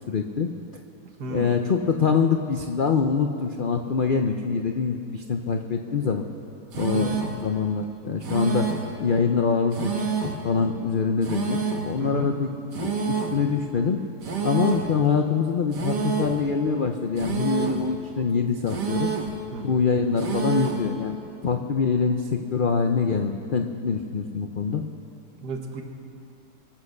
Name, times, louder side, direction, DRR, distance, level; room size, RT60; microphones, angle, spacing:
voice 1, 0.1-0.5 1.2-6.2 6.8-8.7 9.0-12.5 12.8-14.0 14.4-19.1 19.6-21.2 21.4-24.8, left 5 dB, 60° left, 4 dB, 0.5 m, -24 dB
voice 2, 1.2-1.6 6.8-7.1 12.0-12.3 19.5-19.8 25.4-25.8, right 3 dB, 70° right, 3 dB, 1.9 m, -33 dB
sound 1, 6.7-7.4 8.2-8.9 9.7-10.4 11.2-11.9 12.7-13.4 14.2-14.9 15.7-16.4 17.2-17.9 18.7-19.4 20.2-20.9, right 6 dB, 85° right, 2.0 m, -28 dB
23.5 x 8.4 x 6.5 m, 2.6 s
omnidirectional pair, 1.8 m